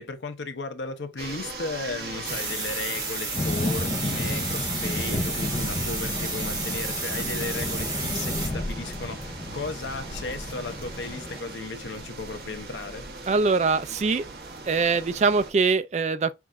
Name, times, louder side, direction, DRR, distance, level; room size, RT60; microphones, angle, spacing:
voice 1, 0.0-13.0, left 3 dB, 85° left, 0.8 m, -35 dB
sound 1, 1.2-15.5, right 3 dB, 55° right, 1.1 m, -40 dB
sound 2, 2.2-8.5, right 3 dB, 20° right, 1.4 m, -32 dB
sound 3, 3.3-11.4, left 1 dB, 30° left, 0.5 m, -32 dB
voice 2, 13.3-14.3 14.7-16.3, right 4 dB, 40° right, 0.3 m, -23 dB
5.8 x 2.5 x 3.6 m
head